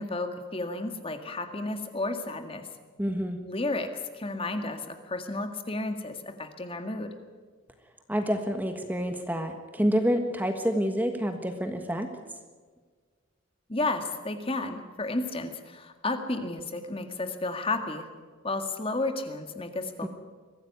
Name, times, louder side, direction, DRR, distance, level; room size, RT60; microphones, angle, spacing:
voice 1, 0.0-2.7 3.4-7.2 13.7-18.1 18.4-20.1, left 2 dB, 25° left, 7 dB, 1.9 m, -32 dB
voice 2, 3.0-3.4 8.1-12.1 20.0-20.1, equal, 10° right, 6 dB, 1.5 m, -28 dB
23.0 x 15.0 x 9.6 m, 1.5 s
head